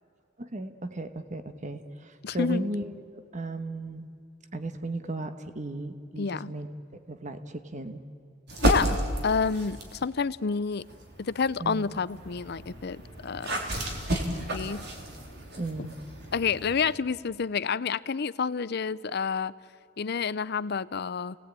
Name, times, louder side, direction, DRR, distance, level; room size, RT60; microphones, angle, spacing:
voice 1, 0.4-4.1 4.5-8.0 11.6-11.9 15.6-16.0, right 2 dB, 40° right, 9 dB, 1.2 m, -36 dB
voice 2, 2.2-2.7 6.2-6.5 8.6-10.9 11.2-13.6 14.5-14.9 16.3-19.5 20.0-21.4, left 5 dB, 55° left, 17 dB, 0.6 m, -29 dB
sound 1, 8.5-10.1 10.7-16.9, right 1 dB, 55° right, 3.3 m, -32 dB
29.0 x 19.0 x 8.9 m, 2.4 s
head